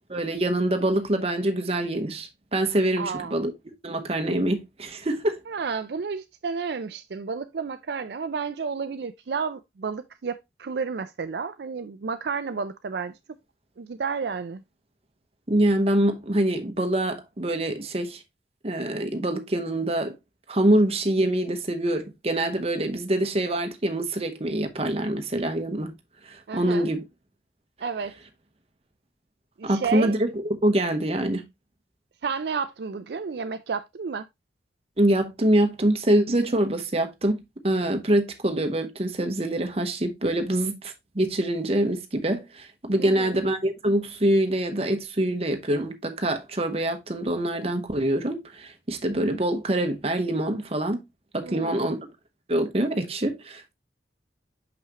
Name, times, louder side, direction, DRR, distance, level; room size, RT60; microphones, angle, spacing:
voice 1, 0.1-5.4 15.5-18.2 18.6-20.1 20.5-25.9 26.3-27.0 29.6-31.4 35.0-51.0 51.3-52.0 52.5-53.7, right 1 dB, 35° right, 0.9 m, -25 dB
voice 2, 3.0-3.4 5.5-13.1 13.8-14.6 26.5-26.9 27.8-28.2 29.6-30.2 32.2-34.3 43.0-43.4 51.4-51.9, right 5 dB, 65° right, 0.4 m, -31 dB
6.1 x 5.7 x 2.9 m
head